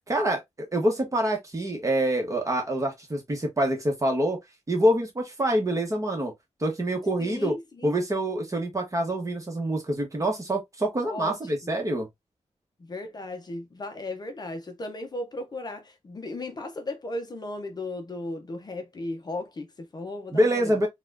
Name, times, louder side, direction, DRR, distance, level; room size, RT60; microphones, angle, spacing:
voice 1, 0.1-4.4 4.7-6.3 6.6-7.5 7.8-12.1 20.3-20.9, right 1 dB, 25° right, 1.1 m, -26 dB
voice 2, 7.2-7.9 11.0-11.4 11.6-11.7 12.9-20.8, left 2 dB, 35° left, 0.6 m, -36 dB
4.1 x 2.3 x 2.5 m
wide cardioid pair, 160°, 12 cm